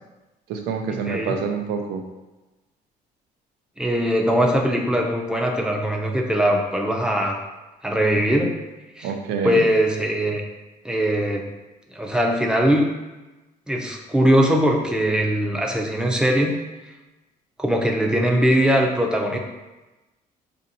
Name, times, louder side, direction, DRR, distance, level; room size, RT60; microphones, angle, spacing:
voice 1, 0.5-2.0 9.0-9.6, right 5 dB, 85° right, 4 dB, 0.5 m, -26 dB
voice 2, 3.8-7.4 7.8-8.6 9.0-9.1 9.4-10.4 10.8-11.5 11.9-12.9 13.7-16.5 17.6-19.4, equal, 5° right, 0 dB, 0.5 m, -21 dB
4.3 x 2.6 x 2.7 m, 1.1 s
cardioid pair, 110°, 17 cm